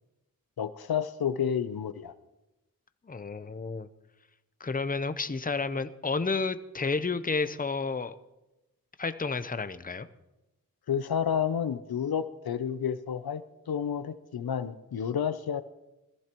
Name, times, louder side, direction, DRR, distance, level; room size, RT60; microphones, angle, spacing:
voice 1, 0.6-2.1 10.9-15.6, left 8 dB, 85° left, 13 dB, 0.7 m, -30 dB
voice 2, 3.1-3.9 4.6-8.1 9.0-10.1, left 4 dB, 25° left, 11 dB, 0.7 m, -31 dB
21.0 x 14.5 x 3.0 m, 1.0 s
wide cardioid pair, 60°, 36 cm